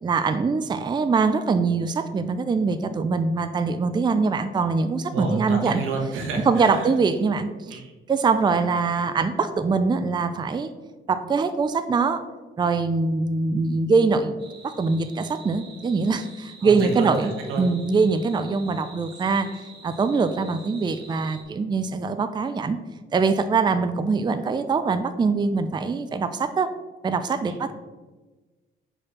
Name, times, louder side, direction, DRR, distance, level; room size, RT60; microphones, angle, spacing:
voice 1, 0.0-5.8 6.5-7.8 8.1-10.7 11.1-12.2 12.6-17.3 17.6-22.8 23.1-26.7 27.0-27.7, right 4 dB, 20° right, 10 dB, 0.4 m, -23 dB
voice 2, 5.1-6.9 7.7-7.9 16.6-17.6 27.5-27.7, right 3 dB, 90° right, 1 dB, 1.5 m, -30 dB
sound 1, 14.4-21.4, right 3 dB, 55° right, 1.9 m, -47 dB
4.9 x 4.3 x 6.0 m, 1.2 s
cardioid pair, 90°, 20 cm